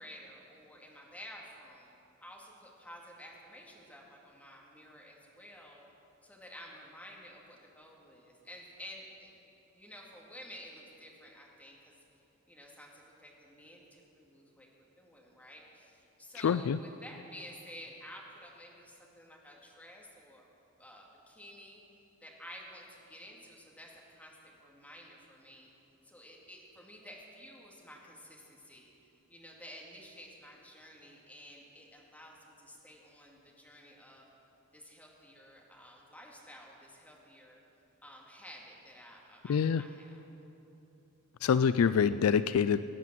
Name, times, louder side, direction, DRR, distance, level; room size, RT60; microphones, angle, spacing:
voice 1, 0.0-1.9 2.2-5.8 6.2-11.9 12.5-20.4 20.8-21.8 22.2-25.7 26.0-28.9 29.3-34.2 34.7-37.6 38.0-40.2, equal, 5° left, -2 dB, 2.1 m, -52 dB
voice 2, 16.4-16.8 39.5-39.8 41.4-42.8, left 7 dB, 65° left, 14 dB, 0.3 m, -26 dB
17.5 x 9.3 x 7.6 m, 3.0 s
head